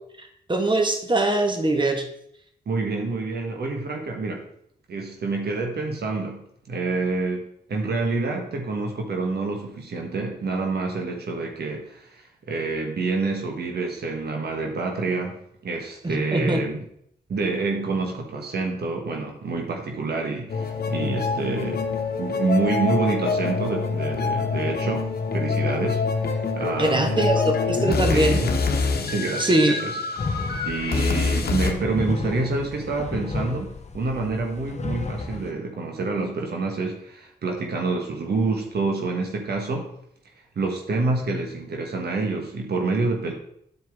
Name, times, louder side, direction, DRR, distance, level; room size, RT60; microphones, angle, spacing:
voice 1, 0.2-2.0 16.0-16.6 26.7-28.4 29.4-29.8, right 1 dB, 30° right, 4 dB, 1.4 m, -22 dB
voice 2, 2.7-4.4 4.9-6.4 6.7-7.4 7.7-15.4 15.6-16.8 17.3-21.9 22.2-27.2 28.1-28.5 29.0-29.9 30.6-39.9 40.5-43.3, right 3 dB, 70° right, 1 dB, 1.3 m, -27 dB
sound 1, 20.5-31.7, left 4 dB, 65° left, 1.0 m, -25 dB
sound 2, 30.2-35.5, left 3 dB, 40° left, 0.8 m, -33 dB
10.0 x 4.6 x 3.6 m, 0.72 s
cardioid pair, 50°, 17 cm